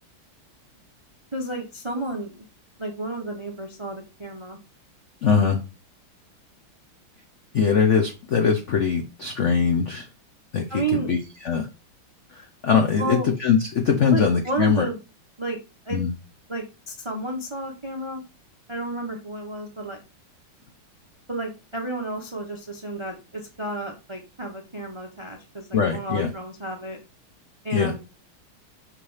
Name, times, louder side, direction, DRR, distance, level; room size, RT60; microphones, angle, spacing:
voice 1, 1.3-2.4 2.8-4.6 10.7-11.1 13.0-13.3 14.0-15.0 15.4-15.6 15.9-16.0 16.5-18.2 18.7-20.0 21.3-27.0 27.6-28.0, right 2 dB, 50° right, 2 dB, 0.3 m, -31 dB
voice 2, 5.2-5.6 7.5-10.1 10.5-11.7 12.3-14.9 15.9-16.1 25.7-26.3 27.7-27.9, left 6 dB, 80° left, 4 dB, 0.6 m, -22 dB
5.5 x 3.3 x 5.5 m, 0.29 s
omnidirectional pair, 2.3 m